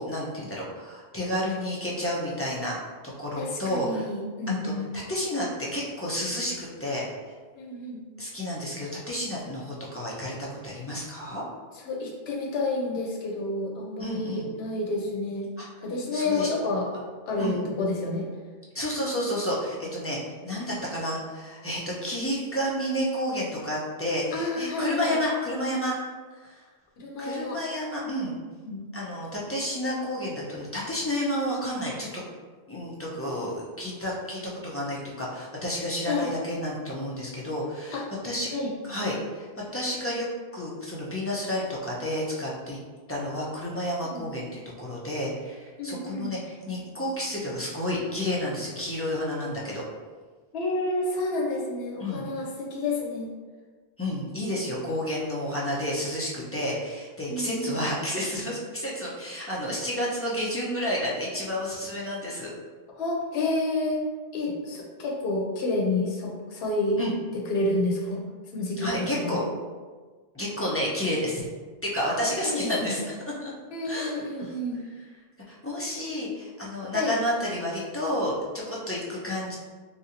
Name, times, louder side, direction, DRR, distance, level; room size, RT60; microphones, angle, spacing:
voice 1, 0.0-2.8 3.2-4.1 4.6-4.7 5.1-7.0 8.2-11.4 14.0-14.5 15.6-15.7 16.1-16.5 17.4-17.6 18.7-26.0 26.4-26.6 27.2-28.3 28.9-32.2 32.7-38.5 38.9-39.5 39.7-40.3 40.5-42.8 43.1-49.8 52.0-52.2 54.0-62.5 67.0-67.1 68.8-69.4 70.3-71.4 71.8-73.0 73.4-73.5 73.8-74.1 74.4-74.5 75.5-79.6, left 1 dB, 20° left, -5 dB, 0.4 m, -30 dB
voice 2, 3.4-4.8 7.6-8.0 11.7-15.5 15.8-18.3 24.3-25.2 27.0-27.6 28.0-28.1 28.6-28.8 36.1-36.3 37.9-38.1 38.5-38.7 44.0-44.4 45.8-46.3 50.5-53.3 57.3-57.7 63.0-64.0 64.3-67.0 67.5-68.2 68.5-69.4 72.2-72.9 73.7-74.8 76.9-77.1, left 2 dB, 80° left, 0 dB, 0.9 m, -29 dB
3.3 x 2.6 x 2.8 m, 1.4 s
omnidirectional pair, 1.0 m